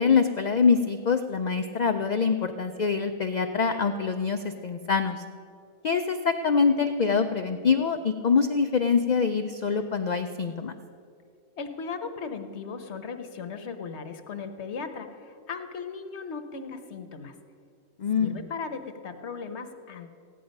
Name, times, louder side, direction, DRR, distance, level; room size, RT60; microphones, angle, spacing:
voice 1, 0.0-5.2 5.8-10.7 18.0-18.4, left 5 dB, 85° left, 7 dB, 0.3 m, -24 dB
voice 2, 11.6-17.3 18.2-20.1, left 5 dB, 60° left, 8 dB, 1.1 m, -37 dB
15.0 x 10.0 x 5.2 m, 2.4 s
omnidirectional pair, 1.4 m